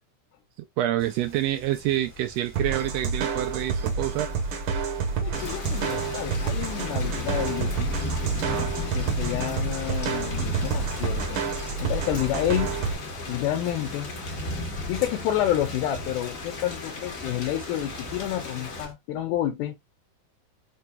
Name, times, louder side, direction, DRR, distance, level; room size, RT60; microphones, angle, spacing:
voice 1, 0.8-4.3 8.5-8.7, right 13 dB, 85° right, 1.5 m, -27 dB
sound 1, 1.0-18.9, right 1 dB, 15° right, 0.4 m, -45 dB
sound 2, 2.5-12.9, right 5 dB, 65° right, 1.4 m, -29 dB
voice 2, 5.2-7.9 8.9-11.4 11.8-12.7 13.3-14.2 14.9-19.8, left 12 dB, 85° left, 2.2 m, -29 dB
Thunder / Rain, 5.3-18.8, left 1 dB, 50° left, 1.0 m, -35 dB
6.1 x 2.8 x 2.2 m
omnidirectional pair, 3.5 m